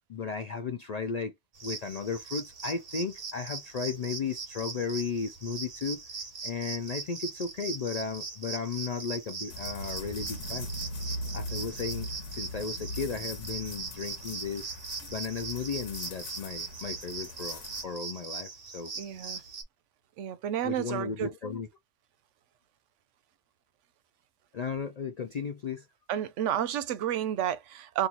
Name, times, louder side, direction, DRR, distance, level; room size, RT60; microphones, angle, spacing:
voice 1, 0.1-1.3 1.6-6.0 6.4-10.7 11.3-14.7 15.1-18.9 19.3-19.5 20.6-21.7 24.5-25.9, left 5 dB, 65° left, 0.4 m, -35 dB
sound 1, 1.5-19.6, right 4 dB, 55° right, 1.1 m, -40 dB
sound 2, 9.5-17.8, left 1 dB, 85° left, 1.2 m, -40 dB
voice 2, 19.0-19.4 20.2-21.3 26.1-28.1, right 10 dB, 85° right, 0.9 m, -31 dB
2.9 x 2.6 x 3.8 m
omnidirectional pair, 1.2 m